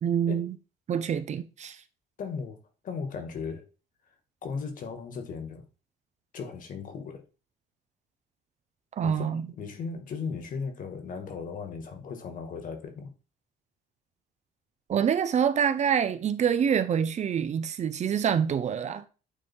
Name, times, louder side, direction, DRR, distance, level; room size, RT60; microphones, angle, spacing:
voice 1, 0.0-0.6 0.9-1.8 9.0-9.4 14.9-19.1, right 8 dB, 45° right, 0.7 m, -26 dB
voice 2, 2.2-2.6 2.8-3.7 4.4-5.6 6.3-7.2 9.0-13.1, left 5 dB, 55° left, 2.0 m, -37 dB
9.0 x 3.5 x 4.6 m
cardioid pair, 110°, 17 cm